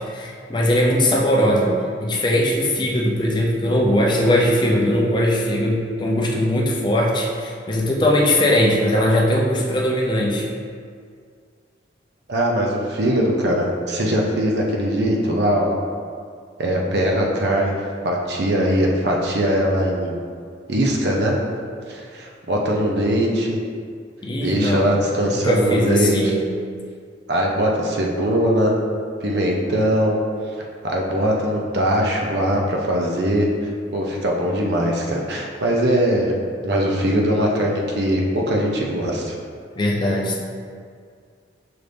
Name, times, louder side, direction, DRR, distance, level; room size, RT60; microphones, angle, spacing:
voice 1, 0.0-10.5 24.2-25.0 25.3-26.4 39.8-40.4, left 1 dB, 25° left, -2 dB, 0.5 m, -20 dB
voice 2, 12.3-15.8 16.6-17.7 18.0-20.2 20.7-21.4 21.9-23.6 24.4-26.3 27.3-28.7 29.2-30.2 30.8-36.3 36.6-39.3, equal, 60° right, -1 dB, 0.6 m, -21 dB
5.9 x 2.5 x 3.4 m, 2.1 s
head